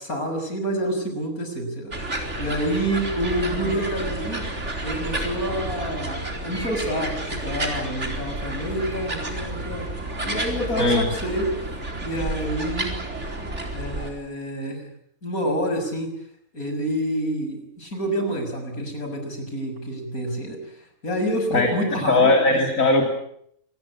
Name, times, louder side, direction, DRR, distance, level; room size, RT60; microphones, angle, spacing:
voice 1, 0.0-1.9 2.4-4.5 4.8-9.9 10.2-11.7 12.0-12.9 13.7-14.9 15.2-16.1 16.5-20.8 21.0-22.6, equal, 85° left, 5 dB, 7.0 m, -28 dB
sound 1, 1.9-14.1, right 1 dB, 55° right, 4.7 m, -30 dB
voice 2, 21.5-23.1, left 2 dB, 65° left, 3 dB, 3.5 m, -19 dB
27.5 x 20.5 x 8.6 m, 0.70 s
omnidirectional pair, 1.5 m